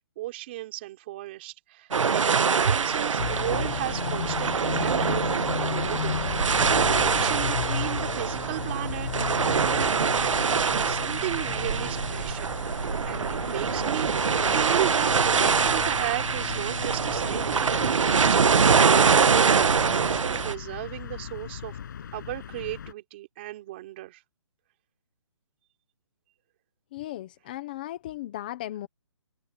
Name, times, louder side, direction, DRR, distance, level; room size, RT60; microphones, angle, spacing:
voice 1, 0.0-6.2 6.7-21.8 22.1-24.2, right 17 dB, 20° right, 3.7 m, -36 dB
sound 1, 1.9-20.5, right 6 dB, 80° right, 1.2 m, -24 dB
sound 2, 3.2-22.9, left 8 dB, 40° left, 7.0 m, -35 dB
voice 2, 26.9-28.9, left 14 dB, 15° left, 1.0 m, -36 dB
hypercardioid pair, 175°, 16 cm